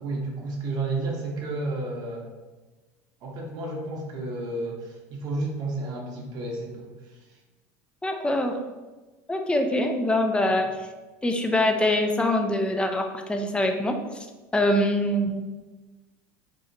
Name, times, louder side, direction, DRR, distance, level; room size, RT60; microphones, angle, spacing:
voice 1, 0.0-2.3 3.2-6.9, right 2 dB, 55° right, 0 dB, 0.9 m, -31 dB
voice 2, 8.0-8.5 9.3-10.7 11.2-14.0 14.5-15.5, left 1 dB, 10° left, 4 dB, 0.4 m, -24 dB
2.8 x 2.4 x 3.9 m, 1.2 s
hypercardioid pair, 85°, 8 cm